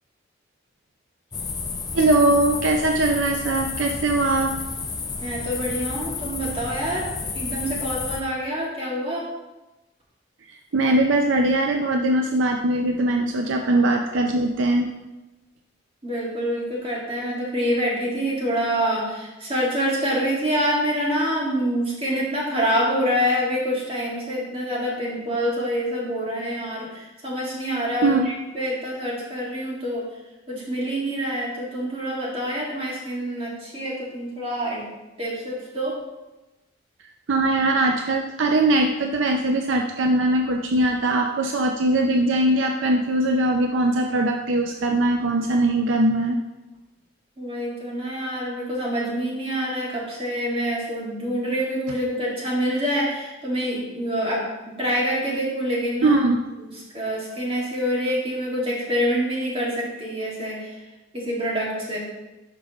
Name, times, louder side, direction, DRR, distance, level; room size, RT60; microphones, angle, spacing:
sound 1, 1.3-8.2, left 4 dB, 20° left, 0.5 m, -31 dB
voice 1, 1.9-4.5 10.7-14.9 28.0-28.2 37.3-46.4 56.0-56.5, right 2 dB, 65° right, 3 dB, 0.5 m, -21 dB
voice 2, 5.2-7.1 7.3-9.3 16.0-30.1 30.5-34.8 35.2-36.0 47.4-54.4 54.8-56.2 56.6-60.8 61.1-62.0, equal, 25° right, -4 dB, 2.2 m, -26 dB
11.5 x 5.4 x 3.0 m, 1.1 s
head